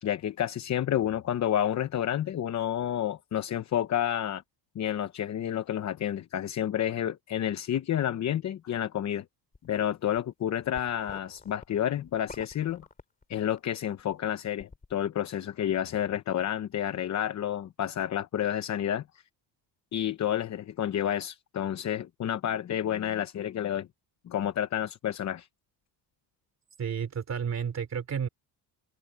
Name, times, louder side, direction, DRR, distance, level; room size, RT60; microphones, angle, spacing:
voice 1, 0.0-4.4 4.7-9.2 9.6-12.9 13.3-19.2 19.9-23.9 24.2-25.5, left 10 dB, 40° left, 0.9 m, -30 dB
sound 1, 9.5-9.8 10.2-13.7 14.0-15.0, left 4 dB, 20° left, 3.1 m, -48 dB
voice 2, 26.8-28.3, right 7 dB, 35° right, 3.0 m, -31 dB
open air
cardioid pair, 145°, 43 cm